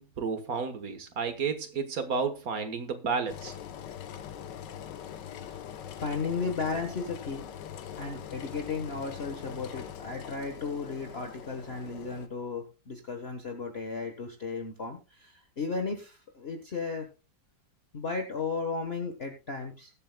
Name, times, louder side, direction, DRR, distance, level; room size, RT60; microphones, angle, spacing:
voice 1, 0.0-3.5, right 5 dB, 55° right, 1.7 m, -32 dB
Engine, 3.3-12.3, left 9 dB, 85° left, 1.5 m, -42 dB
voice 2, 6.0-7.5 8.0-17.1 17.9-19.9, left 4 dB, 40° left, 1.4 m, -35 dB
21.0 x 7.6 x 2.2 m
omnidirectional pair, 1.8 m